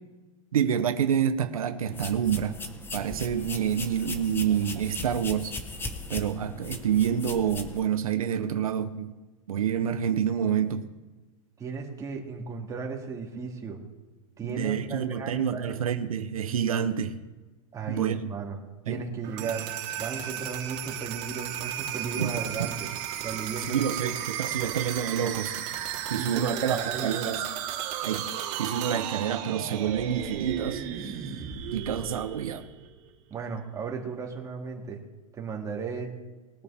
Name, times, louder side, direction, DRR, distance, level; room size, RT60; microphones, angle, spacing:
voice 1, 0.5-2.6 2.9-5.5 6.1-9.1 9.5-10.8 14.4-17.1 17.9-18.2 18.9-19.0 19.4-19.5 22.2-22.3 22.6-22.7 23.7-25.7 26.1-27.5 28.0-28.3 28.6-31.2 31.7-32.6, right 8 dB, 90° right, 8 dB, 1.1 m, -28 dB
sound 1, 1.9-7.8, left 3 dB, 10° left, 1.3 m, -38 dB
voice 2, 11.6-13.8 14.4-15.8 17.7-18.6 18.9-19.7 20.0-22.9 23.2-24.1 24.6-24.7 26.1-27.2 33.3-35.0 35.3-36.1, right 5 dB, 20° right, -1 dB, 2.8 m, -35 dB
sound 2, 19.2-33.1, right 10 dB, 45° right, 2.6 m, -34 dB
21.5 x 8.7 x 3.7 m, 1.2 s
hypercardioid pair, 125°, 18 cm